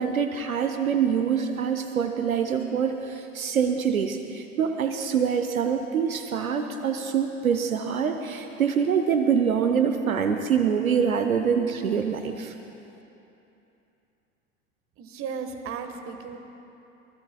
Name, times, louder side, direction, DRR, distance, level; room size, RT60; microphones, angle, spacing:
voice 1, 0.0-12.5, right 7 dB, 75° right, 7 dB, 0.8 m, -25 dB
voice 2, 15.0-16.4, right 6 dB, 30° right, 6 dB, 1.3 m, -35 dB
25.0 x 20.0 x 2.2 m, 2.9 s
figure-of-eight pair, 80°, 42 cm